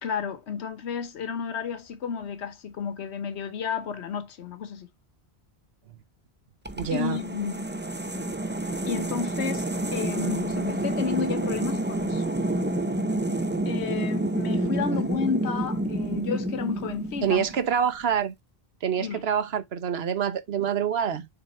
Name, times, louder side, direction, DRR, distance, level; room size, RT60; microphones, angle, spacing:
voice 1, 0.0-4.9 6.9-7.6 8.9-12.2 13.6-17.4 19.0-19.2, left 6 dB, 90° left, 1.2 m, -32 dB
sound 1, 6.7-17.7, right 1 dB, 15° right, 0.4 m, -29 dB
voice 2, 6.7-7.2 14.9-15.0 17.2-18.3 18.8-21.3, right 8 dB, 70° right, 1.2 m, -26 dB
6.7 x 4.1 x 4.2 m
omnidirectional pair, 1.1 m